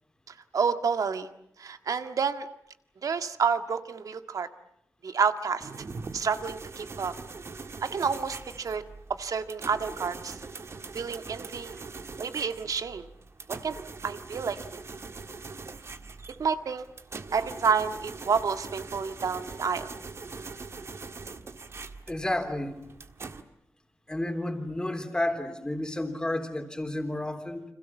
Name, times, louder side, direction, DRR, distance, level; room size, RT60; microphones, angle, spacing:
voice 1, 0.3-1.3 1.6-2.5 3.0-4.5 5.0-5.7 6.1-7.1 7.8-8.8 9.1-10.4 10.9-11.8 12.2-13.1 13.5-13.7 14.0-14.8 16.4-16.8 17.3-19.9, right 6 dB, 75° right, 9 dB, 1.7 m, -29 dB
sound 1, 5.6-23.4, right 4 dB, 50° right, 1.7 m, -42 dB
voice 2, 22.1-22.8 24.1-27.6, left 1 dB, 15° left, 6 dB, 3.6 m, -31 dB
30.0 x 26.5 x 7.2 m, 0.75 s
wide cardioid pair, 140°, 6 cm